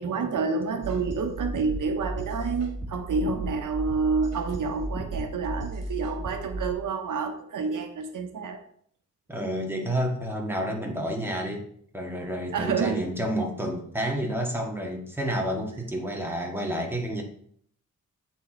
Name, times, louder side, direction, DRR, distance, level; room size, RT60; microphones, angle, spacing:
voice 1, 0.0-8.6 12.5-13.0, right 4 dB, 90° right, 6 dB, 0.9 m, -29 dB
sound 1, 0.8-6.7, right 1 dB, 55° right, 1.7 m, -34 dB
voice 2, 9.3-11.7 11.9-17.2, equal, 5° right, 0 dB, 1.7 m, -30 dB
8.3 x 4.5 x 4.3 m, 0.63 s
wide cardioid pair, 100°, 30 cm